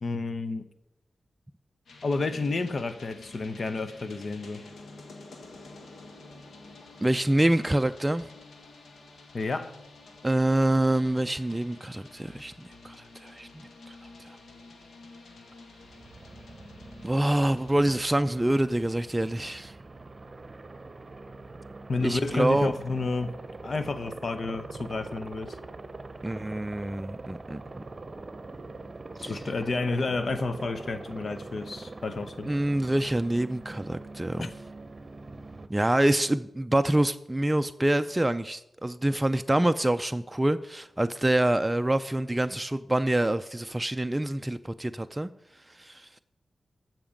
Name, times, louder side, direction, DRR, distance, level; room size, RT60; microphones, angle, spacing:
voice 1, 0.0-0.7 2.0-4.6 9.3-9.7 21.9-23.4 23.6-25.6 29.2-32.5 34.4-34.5, left 3 dB, 60° left, 0.8 m, -30 dB
sound 1, 1.9-18.1, left 3 dB, 80° left, 1.6 m, -49 dB
voice 2, 7.0-8.3 10.2-13.9 14.3-14.4 17.0-19.7 22.0-22.7 26.2-27.8 29.2-29.3 32.5-34.5 35.7-45.3 45.8-46.1, right 1 dB, 15° right, 0.4 m, -26 dB
Aircraft, 15.8-35.7, right 3 dB, 40° right, 0.9 m, -43 dB
14.5 x 5.9 x 5.2 m
cardioid pair, 50°, 0 cm